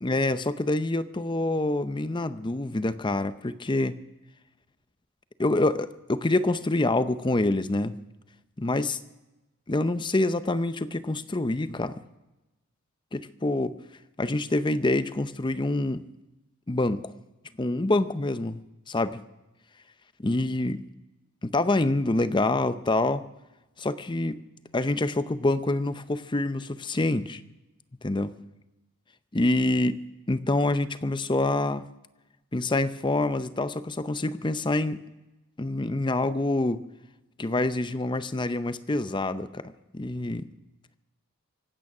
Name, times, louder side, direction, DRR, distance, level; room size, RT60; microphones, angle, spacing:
voice 1, 0.0-4.0 5.4-8.0 8.6-9.0 9.7-12.0 13.1-13.8 14.2-16.0 16.7-17.1 17.6-18.6 18.9-19.2 20.2-20.8 21.4-23.2 23.8-24.4 24.7-27.4 28.0-28.4 29.3-31.9 32.5-35.0 35.6-36.8 37.4-40.5, left 2 dB, 20° left, 13 dB, 0.6 m, -26 dB
25.0 x 9.1 x 6.1 m, 1.0 s
head